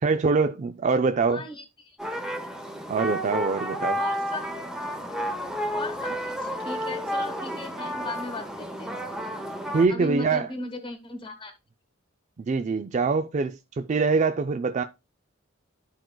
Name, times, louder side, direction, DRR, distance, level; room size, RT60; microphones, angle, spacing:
voice 1, 0.0-1.4 2.9-4.0 9.7-10.5 12.4-14.8, right 4 dB, 35° right, 0.4 m, -24 dB
voice 2, 1.3-2.0 3.9-4.4 5.7-9.0 9.9-11.5, left 2 dB, 25° left, 1.2 m, -37 dB
sound 1, 2.0-9.9, equal, 5° right, 0.8 m, -31 dB
13.5 x 4.5 x 2.2 m
head